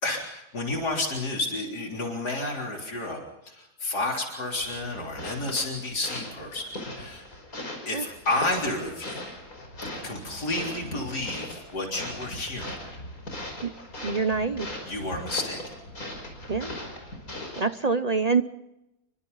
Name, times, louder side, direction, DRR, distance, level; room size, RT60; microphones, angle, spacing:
voice 1, 0.0-6.7 6.9-7.3 7.9-9.2 10.0-12.8 14.8-15.7, left 2 dB, 90° left, 0 dB, 4.2 m, -31 dB
sound 1, 4.6-17.6, left 1 dB, 60° left, 6.0 m, -39 dB
voice 2, 14.0-14.7 16.5-16.8 17.5-18.4, right 4 dB, 40° right, 11 dB, 0.6 m, -25 dB
29.5 x 24.0 x 4.1 m, 0.90 s
omnidirectional pair, 1.7 m